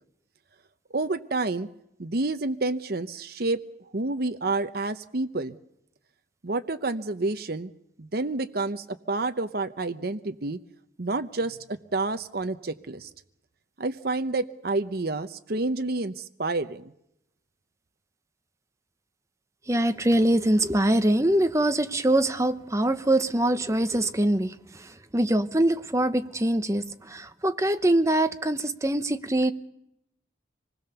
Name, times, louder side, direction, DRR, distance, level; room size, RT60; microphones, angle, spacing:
voice 1, 0.9-1.7 2.0-3.6 3.9-5.6 6.4-7.7 8.0-10.6 11.0-13.1 13.8-16.8, right 2 dB, 55° right, 0.8 m, -29 dB
voice 2, 19.7-29.5, right 1 dB, 15° right, 1.0 m, -24 dB
25.5 x 20.0 x 6.9 m
head